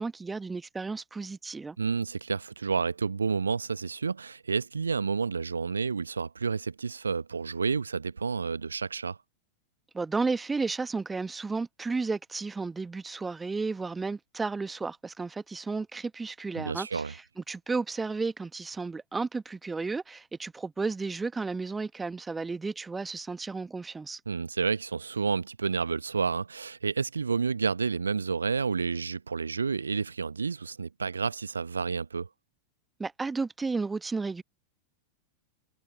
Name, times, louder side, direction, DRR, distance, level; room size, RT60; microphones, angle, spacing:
voice 1, 0.0-1.8 9.9-24.2 33.0-34.4, right 4 dB, 10° right, 1.4 m, -33 dB
voice 2, 1.8-9.2 16.6-17.1 24.3-32.3, right 5 dB, 75° right, 1.1 m, -30 dB
figure-of-eight pair, 90°, 0 cm